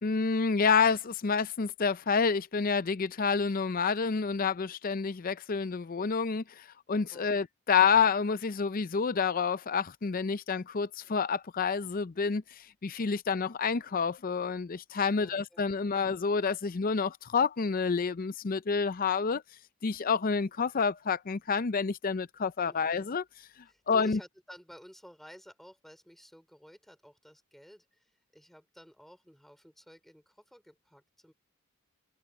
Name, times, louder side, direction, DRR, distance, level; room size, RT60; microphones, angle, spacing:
voice 1, 0.0-19.4 19.8-23.2 23.9-24.2, left 5 dB, 40° left, 0.5 m, -28 dB
voice 2, 7.1-7.4 15.1-16.0 22.6-22.9 23.7-31.3, equal, ahead, 4.8 m, -53 dB
head